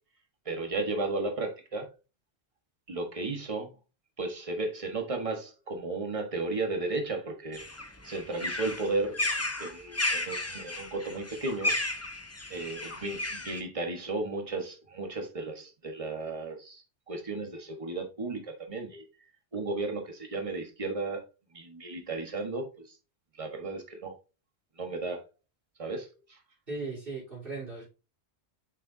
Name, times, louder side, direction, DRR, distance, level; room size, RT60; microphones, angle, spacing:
voice 1, 0.4-1.9 2.9-3.7 4.2-7.6 8.0-9.3 9.6-11.7 12.5-19.0 19.5-21.2 21.5-23.0 23.3-24.2 24.8-25.2 25.8-26.4, right 3 dB, 30° right, 1.4 m, -34 dB
sound 1, 7.5-13.6, left 2 dB, 15° left, 0.8 m, -33 dB
voice 2, 26.7-27.9, right 3 dB, 50° right, 4.0 m, -37 dB
6.7 x 6.1 x 2.7 m
omnidirectional pair, 1.2 m